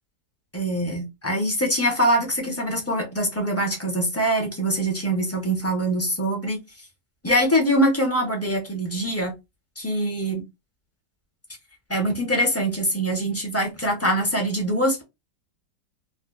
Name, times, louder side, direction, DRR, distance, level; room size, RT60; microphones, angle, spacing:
voice 1, 0.5-6.6 7.2-9.3 9.8-10.4 11.9-15.0, right 1 dB, 15° left, 0.5 m, -23 dB
2.7 x 2.4 x 3.8 m
omnidirectional pair, 1.8 m